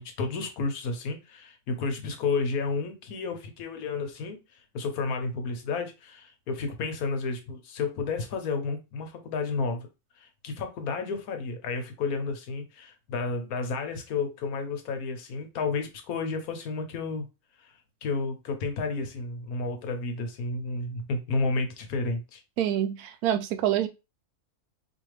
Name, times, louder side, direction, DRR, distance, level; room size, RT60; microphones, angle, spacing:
voice 1, 0.0-4.4 4.7-9.9 10.2-17.2 17.6-17.7 18.0-22.4, left 4 dB, 75° left, 1.2 m, -31 dB
voice 2, 22.6-23.9, right 11 dB, 80° right, 1.1 m, -26 dB
4.4 x 2.5 x 3.2 m
omnidirectional pair, 1.6 m